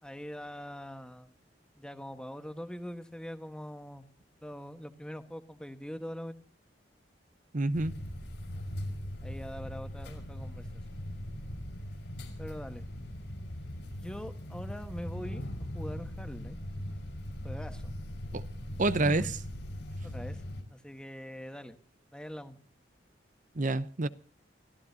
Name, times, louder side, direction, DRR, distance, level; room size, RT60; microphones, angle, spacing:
voice 1, 0.0-1.3 1.8-4.1 4.4-6.3 9.2-10.7 12.4-12.9 14.0-15.5 15.7-16.6 17.4-17.9 18.9-19.3 20.0-20.4 20.7-21.8 22.1-22.6, equal, 5° left, 1.4 m, -42 dB
voice 2, 7.5-7.9 18.3-18.4 18.8-19.3 23.6-24.1, right 2 dB, 45° right, 0.7 m, -27 dB
sound 1, 7.7-20.6, left 1 dB, 75° left, 5.1 m, -40 dB
29.0 x 14.5 x 2.8 m
head